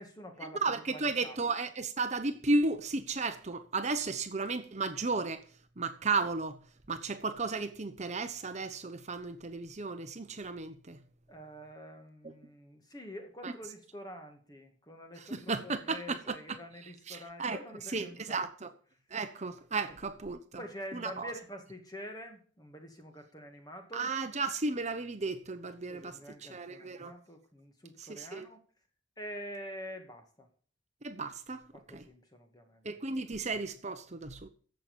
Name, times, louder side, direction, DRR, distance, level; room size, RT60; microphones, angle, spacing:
voice 1, 0.0-1.4 11.3-18.7 19.9-20.1 20.6-24.1 25.9-28.6 29.2-30.5 31.7-32.8, equal, 20° left, 2.3 m, -46 dB
voice 2, 0.6-5.4 5.8-6.6 6.9-11.0 12.2-12.3 13.4-13.5 15.3-16.4 17.1-17.6 17.9-18.7 19.1-20.4 20.9-21.3 23.9-27.1 28.0-28.5 31.0-31.6 31.9-32.0 32.8-34.5, right 3 dB, 40° right, 1.0 m, -34 dB
11.5 x 7.8 x 6.9 m
head